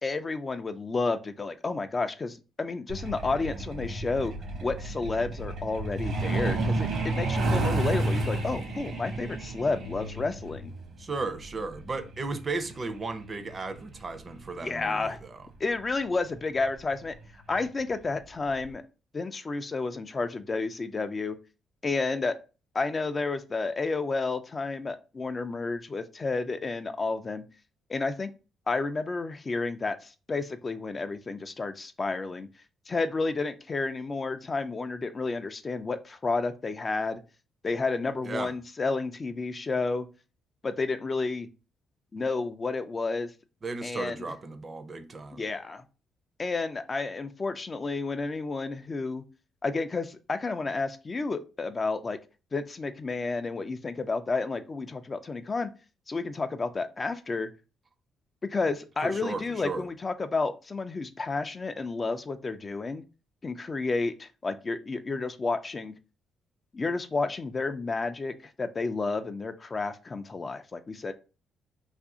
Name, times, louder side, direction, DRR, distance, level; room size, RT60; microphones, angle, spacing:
voice 1, 0.0-4.3 4.6-10.7 14.6-15.2 15.6-17.1 17.5-18.8 19.1-21.4 21.8-22.4 22.7-27.4 27.9-28.3 28.7-32.5 32.9-37.2 37.6-40.1 40.6-41.5 42.1-43.3 43.8-44.2 45.3-45.8 46.4-49.2 49.6-52.2 52.5-55.7 56.1-57.5 58.5-63.0 63.4-65.9 66.7-71.1, left 3 dB, 30° left, 0.3 m, -31 dB
Truck, 2.9-15.2 16.4-16.6 17.0-17.2 17.5-17.8 18.1-18.2 18.7-18.8, right 2 dB, 70° right, 0.9 m, -31 dB
voice 2, 11.0-15.5 38.2-38.5 43.6-45.4 59.0-59.9, right 3 dB, 35° right, 0.5 m, -35 dB
2.7 x 2.5 x 3.6 m
cardioid pair, 90°, 0 cm